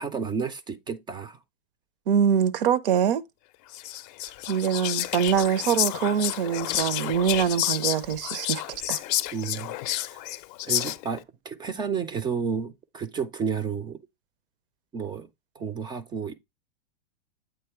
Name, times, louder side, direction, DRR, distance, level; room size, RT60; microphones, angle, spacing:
voice 1, 0.0-1.4 9.3-9.8 10.1-10.2 10.6-14.0 14.9-15.3 15.6-16.3, right 6 dB, 15° right, 0.3 m, -31 dB
voice 2, 2.1-3.2 4.5-9.0, right 8 dB, 65° right, 0.6 m, -24 dB
Whispering, 3.7-11.2, left 14 dB, 45° left, 0.5 m, -30 dB
8.0 x 3.1 x 4.4 m
hypercardioid pair, 100°, 29 cm